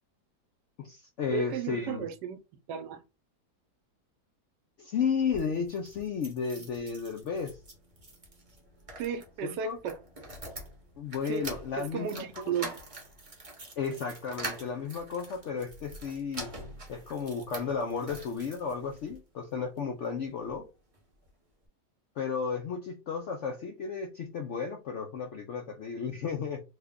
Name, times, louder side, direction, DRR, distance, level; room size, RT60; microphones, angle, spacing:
voice 1, 0.8-2.0 4.8-7.6 9.4-9.8 11.0-12.3 13.8-16.5 16.9-20.6 22.2-26.6, left 6 dB, 75° left, 0.6 m, -33 dB
voice 2, 1.3-2.4 2.7-3.0 9.0-10.0 11.2-11.5 11.8-12.8, right 7 dB, 85° right, 1.2 m, -34 dB
sound 1, 5.2-19.2 19.8-20.6 20.9-21.0 21.3-21.4, right 2 dB, 30° right, 0.6 m, -45 dB
3.3 x 2.2 x 3.5 m
omnidirectional pair, 1.8 m